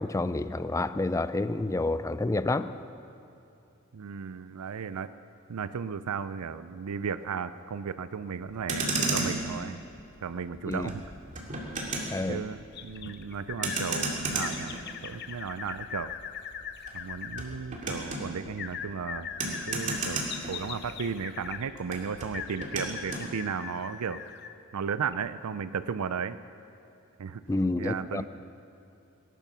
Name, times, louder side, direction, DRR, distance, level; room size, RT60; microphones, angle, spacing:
voice 1, 0.0-2.7 10.7-10.9 12.1-12.4 27.5-28.3, left 2 dB, 15° left, 13 dB, 0.4 m, -29 dB
voice 2, 3.9-5.1 5.5-9.8 10.2-11.0 12.3-14.7 15.0-16.1 16.9-20.2 20.5-24.2 24.7-26.4 27.2-27.4 27.8-28.3, right 6 dB, 85° right, 13 dB, 0.5 m, -35 dB
Motor vehicle (road), 8.5-21.1 21.4-23.3, right 2 dB, 35° right, 2.4 m, -34 dB
sound 1, 12.7-13.8 14.4-17.4 18.6-21.7 22.3-24.6 25.1-25.2, left 8 dB, 50° left, 0.7 m, -40 dB
19.0 x 11.0 x 6.1 m, 2.7 s
head